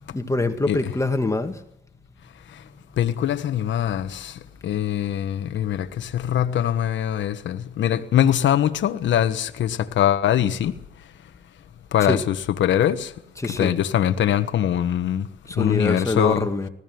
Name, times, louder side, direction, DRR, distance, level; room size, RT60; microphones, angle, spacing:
voice 1, 0.0-1.6 12.0-12.2 13.4-13.7 15.5-16.7, left 2 dB, 15° left, 2.1 m, -24 dB
voice 2, 3.0-4.3 4.6-10.7 11.9-12.3 12.6-13.1 13.6-15.3 15.6-16.5, left 10 dB, 70° left, 1.3 m, -22 dB
20.0 x 15.0 x 9.4 m
cardioid pair, 90°, 20 cm